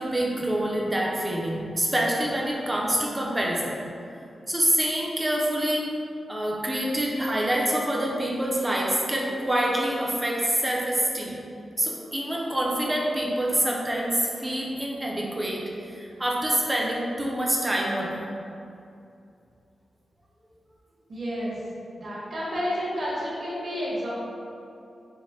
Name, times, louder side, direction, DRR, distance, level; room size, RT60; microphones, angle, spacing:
voice 1, 0.0-3.7 4.3-5.9 6.3-11.4 11.8-18.2, right 1 dB, 15° right, -3 dB, 0.5 m, -26 dB
voice 2, 21.1-21.6 21.9-24.1, equal, 60° right, -8 dB, 1.3 m, -30 dB
5.2 x 2.1 x 2.6 m, 2.6 s
wide cardioid pair, 125°, 0 cm